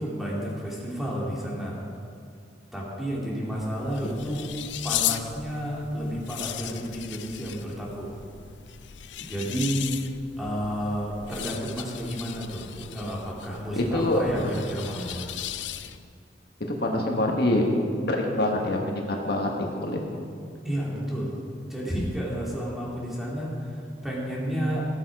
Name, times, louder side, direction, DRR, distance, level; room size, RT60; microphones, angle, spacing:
voice 1, 0.0-1.9 2.7-4.5 4.8-8.2 9.2-9.8 10.4-15.2 20.6-24.9, equal, ahead, -5 dB, 2.5 m, -31 dB
sound 1, 3.4-16.2, left 12 dB, 85° left, 0.5 m, -36 dB
voice 2, 13.8-14.5 16.7-17.7 18.1-20.0, left 1 dB, 60° left, 1 dB, 1.4 m, -25 dB
17.5 x 6.9 x 4.8 m, 2.3 s
head